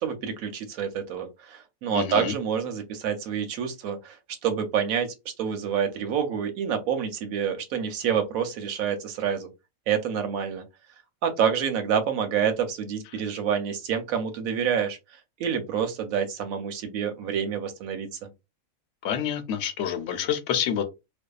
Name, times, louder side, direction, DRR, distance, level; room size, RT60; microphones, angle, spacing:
voice 1, 0.0-4.2 4.4-5.1 5.4-9.5 9.9-10.6 11.2-15.0 15.4-18.3, right 7 dB, 85° right, 1.0 m, -27 dB
voice 2, 1.9-2.3 19.0-20.8, left 9 dB, 65° left, 0.8 m, -28 dB
2.6 x 2.2 x 2.3 m
omnidirectional pair, 1.4 m